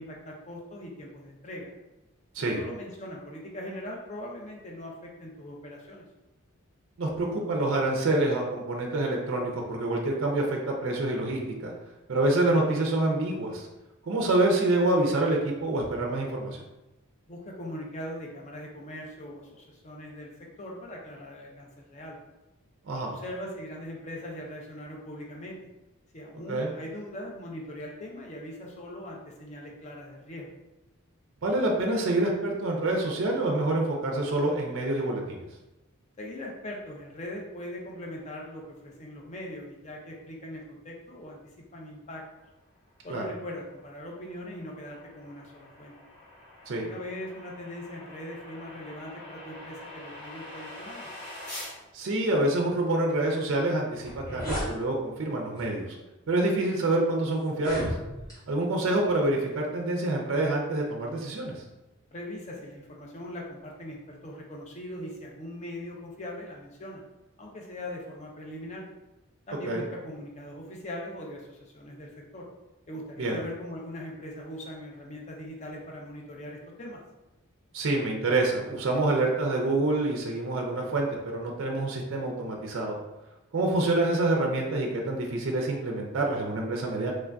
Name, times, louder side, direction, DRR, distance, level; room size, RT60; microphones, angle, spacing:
voice 1, 0.0-1.7 2.4-6.0 17.3-22.2 23.0-25.6 26.1-30.6 36.2-41.4 41.7-42.2 43.0-45.9 46.7-51.1 62.1-67.0 67.4-68.8 69.5-72.5 72.9-77.0, left 1 dB, 30° left, -1 dB, 0.4 m, -41 dB
voice 2, 7.0-11.7 12.1-13.7 14.0-16.6 22.9-23.2 26.5-26.7 31.4-35.4 43.1-43.2 46.7-46.8 51.9-56.0 56.3-57.9 58.5-61.5 69.7-69.8 73.2-73.4 77.7-83.0 83.5-87.1, right 2 dB, 60° right, 0 dB, 0.4 m, -27 dB
sound 1, 43.1-51.8, left 2 dB, 90° left, 1.0 m, -45 dB
sound 2, 54.0-54.7 55.6-55.8 56.5-56.6 57.5-58.4, equal, 15° left, 0.8 m, -33 dB
3.1 x 2.5 x 2.2 m, 1.0 s
head